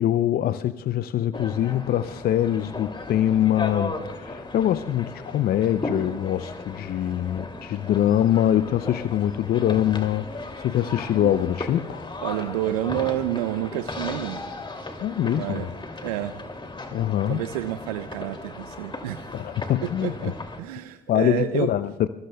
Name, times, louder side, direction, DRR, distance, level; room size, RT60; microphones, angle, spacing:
voice 1, 0.0-12.1 15.0-15.7 16.9-17.4 19.3-20.3 21.1-22.1, left 11 dB, 55° left, 0.5 m, -24 dB
sound 1, 1.3-20.6, left 2 dB, 25° left, 2.6 m, -36 dB
voice 2, 12.2-14.4 15.2-16.4 17.3-19.3 19.8-21.7, right 13 dB, 85° right, 0.5 m, -29 dB
26.0 x 23.0 x 2.3 m
hypercardioid pair, 45°, 18 cm